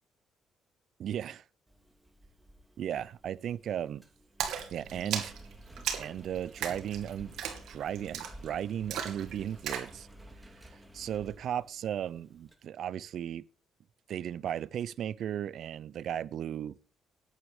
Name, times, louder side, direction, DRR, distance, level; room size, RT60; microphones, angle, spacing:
voice 1, 1.0-1.4 2.8-4.0 4.7-5.3 5.9-10.1 10.6-13.4 14.1-16.7, right 10 dB, 70° right, 0.5 m, -36 dB
Engine, 1.7-12.5, equal, 10° right, 2.7 m, -53 dB
Splash splatter, 4.4-9.9, right 9 dB, 85° right, 2.6 m, -37 dB
9.7 x 9.2 x 6.5 m
cardioid pair, 90°, 0 cm